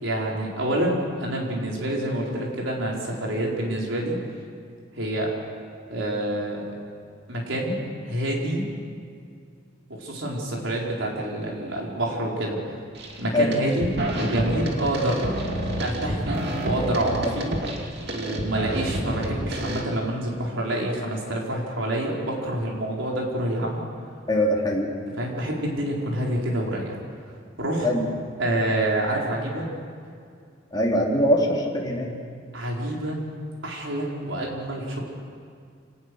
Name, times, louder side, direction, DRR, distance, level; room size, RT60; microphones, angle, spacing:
voice 1, 0.0-4.2 4.9-5.3 5.9-6.7 7.3-7.8 8.0-8.7 10.0-12.6 13.2-13.9 14.2-15.4 15.8-17.5 18.0-23.8 25.2-26.9 27.6-27.9 28.4-29.7 32.5-33.2 33.6-35.0, right 1 dB, 85° right, -2 dB, 4.8 m, -27 dB
sound 1, 12.9-13.2 13.5-19.8, right 1 dB, 60° right, 2.5 m, -29 dB
voice 2, 24.3-24.9 27.8-28.0 30.7-32.1, left 1 dB, 20° left, -3 dB, 3.1 m, -22 dB
27.5 x 18.5 x 6.4 m, 2.2 s
head